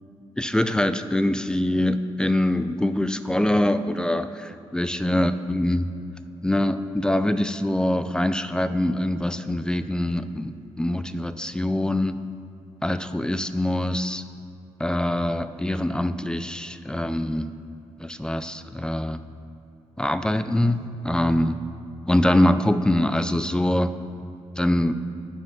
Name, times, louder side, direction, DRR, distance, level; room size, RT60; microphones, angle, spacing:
voice 1, 0.4-5.9 6.4-10.5 10.8-12.2 12.8-14.2 14.8-17.5 18.0-19.2 20.0-21.6 22.1-23.9 24.6-24.9, left 1 dB, 5° left, 11 dB, 0.4 m, -24 dB
9.4 x 4.7 x 6.0 m, 2.7 s
cardioid pair, 65°, 12 cm